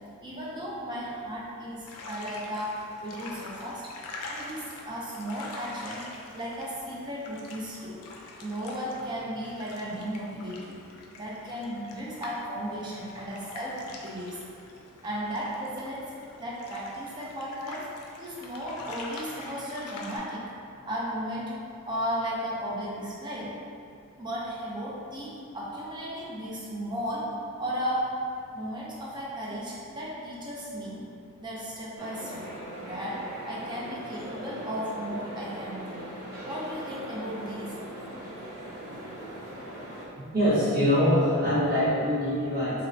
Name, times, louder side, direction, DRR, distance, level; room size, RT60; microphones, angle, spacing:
voice 1, 0.2-3.9 4.3-6.1 6.3-8.0 8.4-10.8 11.2-14.4 15.0-17.9 18.2-20.5 20.9-23.6 24.2-27.3 27.6-28.2 28.5-31.1 31.4-32.5 32.8-36.1 36.4-37.8, equal, 20° right, -6 dB, 0.4 m, -35 dB
sound 1, 1.9-20.2, left 2 dB, 85° left, 0.4 m, -45 dB
sound 2, 32.0-40.1, right 1 dB, 75° right, 0.6 m, -40 dB
voice 2, 40.3-42.9, equal, 40° right, -13 dB, 1.3 m, -23 dB
2.9 x 2.0 x 2.6 m, 2.4 s
head